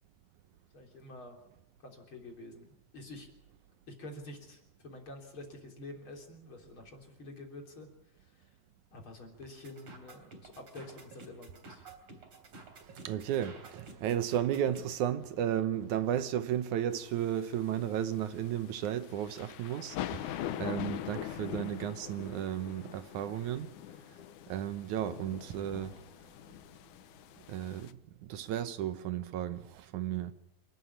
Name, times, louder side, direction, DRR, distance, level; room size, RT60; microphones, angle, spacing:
voice 1, 0.7-1.4 1.8-3.3 3.9-7.9 8.1-8.6 8.9-11.9, left 2 dB, 40° left, 4.2 m, -48 dB
sound 1, 9.6-14.9, right 3 dB, 45° right, 4.1 m, -51 dB
voice 2, 13.0-23.7 24.5-26.0 27.5-27.9 28.2-30.3, right 10 dB, 75° right, 2.4 m, -34 dB
sound 2, 17.0-27.9, left 11 dB, 80° left, 2.4 m, -43 dB
27.0 x 12.5 x 10.0 m
omnidirectional pair, 3.5 m